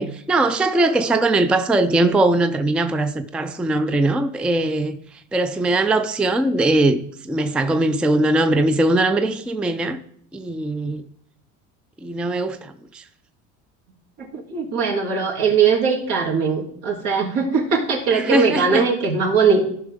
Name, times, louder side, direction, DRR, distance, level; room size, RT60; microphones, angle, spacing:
voice 1, 0.0-10.0 10.3-11.0 12.0-13.0 18.1-18.8, right 2 dB, 5° right, 0.3 m, -20 dB
voice 2, 14.2-19.6, right 5 dB, 75° right, 2.8 m, -20 dB
15.0 x 5.7 x 3.6 m
cardioid pair, 120°, 35 cm